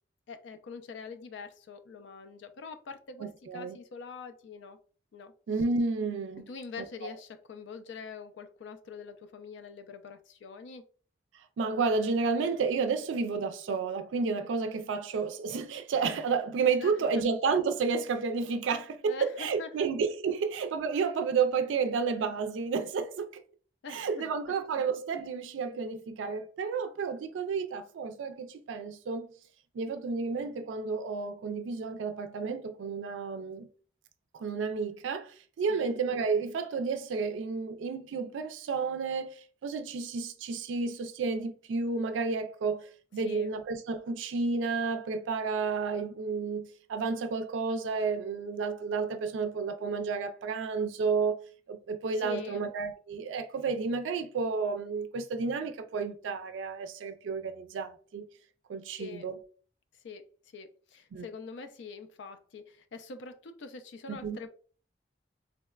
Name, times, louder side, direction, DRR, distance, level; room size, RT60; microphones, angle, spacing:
voice 1, 0.3-4.8 5.1-5.3 6.5-10.9 16.8-17.1 19.1-19.9 23.8-24.2 35.7-35.9 43.2-43.5 52.1-52.7 59.0-59.3 59.9-64.5, left 5 dB, 75° left, 0.4 m, -44 dB
voice 2, 3.2-3.8 5.5-6.5 7.0-7.1 11.6-23.3 23.9-29.3 29.7-33.7 34.4-51.4 51.7-58.2 58.7-59.4 61.1-61.3 64.1-64.4, right 5 dB, 90° right, 0.3 m, -31 dB
3.8 x 2.1 x 2.2 m
head